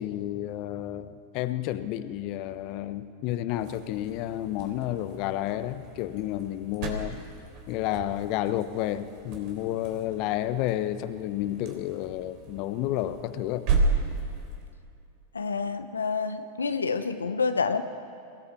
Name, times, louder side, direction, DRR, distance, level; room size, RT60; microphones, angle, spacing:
voice 1, 0.0-7.2 7.7-13.7, left 13 dB, 50° left, 12 dB, 1.0 m, -31 dB
sound 1, 3.5-14.7, right 3 dB, 50° right, 3.6 m, -34 dB
voice 2, 15.3-17.8, left 5 dB, 90° left, 9 dB, 0.8 m, -28 dB
22.5 x 16.5 x 7.3 m, 2.5 s
hypercardioid pair, 95°, 0 cm